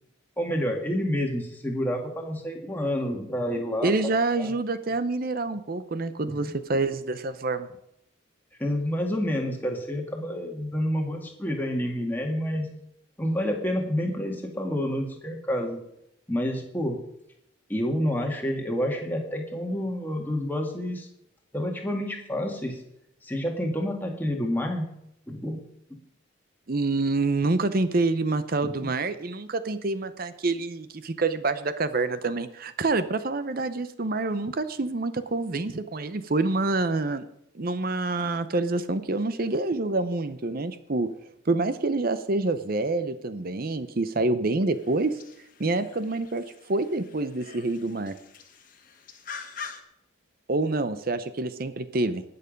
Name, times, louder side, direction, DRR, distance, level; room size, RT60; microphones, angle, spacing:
voice 1, 0.4-3.9 4.3-4.5 6.3-6.4 8.6-12.7 13.2-15.8 16.3-17.0 17.7-21.1 21.5-22.8 23.2-24.9 25.3-25.6 28.6-28.9, equal, 10° left, 1 dB, 1.9 m, -29 dB
voice 2, 3.8-7.7 26.7-37.3 37.5-41.1 41.5-45.2 45.6-48.2 50.5-52.2, right 3 dB, 45° right, 12 dB, 0.7 m, -27 dB
sound 1, 44.7-49.8, left 5 dB, 40° left, 1.5 m, -45 dB
19.5 x 6.9 x 5.2 m, 0.79 s
head